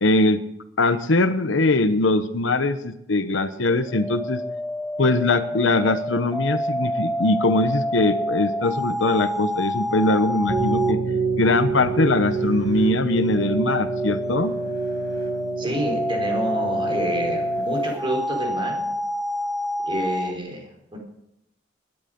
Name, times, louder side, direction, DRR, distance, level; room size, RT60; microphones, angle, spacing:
voice 1, 0.0-0.4 0.8-4.4 5.0-11.0 11.4-14.6, left 2 dB, 75° left, 11 dB, 1.0 m, -21 dB
sound 1, 3.6-11.0 13.0-20.3, left 1 dB, ahead, 0.6 m, -28 dB
sound 2, 10.5-18.0, right 5 dB, 70° right, 4.9 m, -28 dB
voice 2, 15.6-18.8 19.9-21.0, right 1 dB, 25° right, 0 dB, 4.8 m, -28 dB
20.5 x 11.0 x 5.3 m, 0.80 s
head